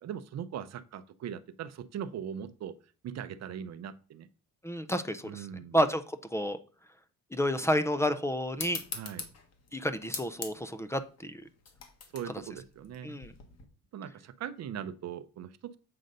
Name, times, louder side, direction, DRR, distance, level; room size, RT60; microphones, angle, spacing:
voice 1, 0.0-2.8 3.0-4.3 5.2-5.8 8.9-9.2 12.1-13.2 13.9-15.8, right 9 dB, 55° right, 13 dB, 0.6 m, -40 dB
voice 2, 4.6-5.5 5.7-6.6 7.3-8.8 9.7-11.4 13.0-13.3, equal, 10° left, 11 dB, 0.4 m, -30 dB
sound 1, 8.6-13.6, left 5 dB, 50° left, 1.5 m, -43 dB
7.7 x 3.8 x 5.3 m, 0.38 s
cardioid pair, 150°, 32 cm